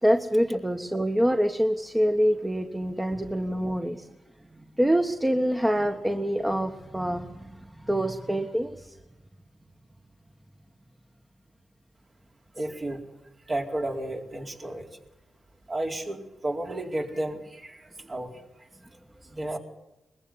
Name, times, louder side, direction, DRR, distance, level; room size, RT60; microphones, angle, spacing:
voice 1, 0.0-4.1 4.8-9.0, equal, 15° right, 4 dB, 1.6 m, -26 dB
voice 2, 12.5-13.0 13.5-14.9 15.7-18.3 19.3-19.6, right 1 dB, 40° right, 1 dB, 4.4 m, -32 dB
21.5 x 15.0 x 9.9 m, 0.98 s
cardioid pair, 60°, 0 cm